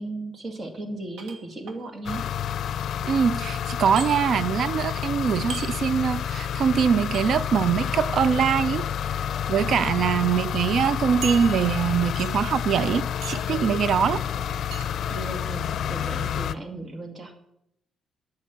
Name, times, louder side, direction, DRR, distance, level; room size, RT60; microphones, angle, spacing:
voice 1, 0.0-2.3 15.1-17.3, right 2 dB, 35° right, 2.2 m, -36 dB
sound 1, 1.2-1.8 4.0-4.1 5.5-5.7 7.1-7.3 8.6-8.9 9.6-9.7 10.1-10.2 11.2-11.8 12.2-12.5 13.2-13.5 14.7-14.9, right 5 dB, 80° right, 1.6 m, -37 dB
sound 2, 2.1-16.6, left 9 dB, 65° left, 0.5 m, -29 dB
voice 2, 3.0-8.9 9.5-14.3, right 7 dB, 60° right, 0.4 m, -23 dB
10.5 x 8.5 x 7.0 m
cardioid pair, 90°, 0 cm